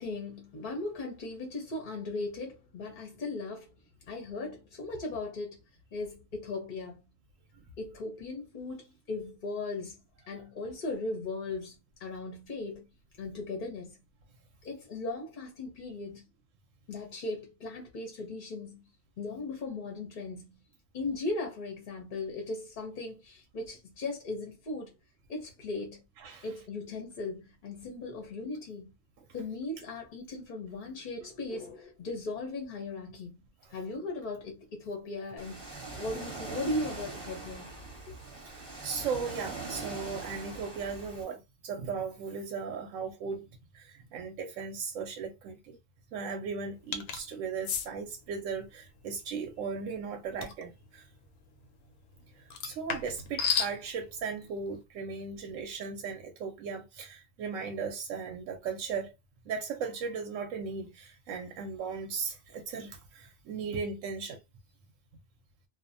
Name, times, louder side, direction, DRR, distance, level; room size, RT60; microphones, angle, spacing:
voice 1, 0.0-3.7 4.1-5.6 5.9-7.1 7.8-10.0 10.3-12.8 13.2-14.0 14.6-16.2 16.9-18.8 19.2-20.6 20.9-24.9 25.3-26.0 26.4-28.9 29.3-33.4 33.7-35.7 36.0-37.8 38.1-38.2, left 2 dB, 50° left, 0.6 m, -38 dB
Ocean, 35.4-41.2, right 3 dB, 25° right, 0.7 m, -42 dB
voice 2, 38.4-43.5 43.7-45.8 46.1-51.1 52.4-59.1 59.5-64.4, right 5 dB, 70° right, 0.9 m, -37 dB
sound 1, 46.9-47.2 47.6-47.9 50.4-50.6 52.5-53.7, left 7 dB, 90° left, 1.1 m, -31 dB
2.5 x 2.1 x 2.5 m
omnidirectional pair, 1.5 m